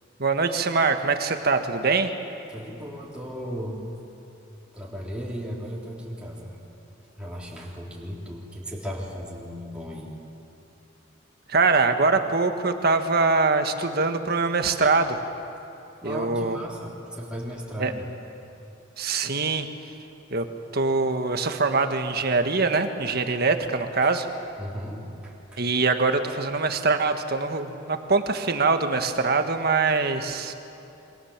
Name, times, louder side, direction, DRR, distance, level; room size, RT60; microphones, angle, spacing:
voice 1, 0.2-2.1 11.5-15.2 16.0-16.6 17.8-17.9 19.0-19.7 20.3-20.4 20.7-24.3 25.6-30.5, right 4 dB, 55° right, 6 dB, 1.6 m, -23 dB
voice 2, 2.5-3.9 4.7-6.6 7.2-10.1 14.8-15.0 16.0-18.1 24.6-25.6, equal, 5° right, -5 dB, 3.8 m, -36 dB
28.5 x 24.0 x 7.4 m, 2.9 s
head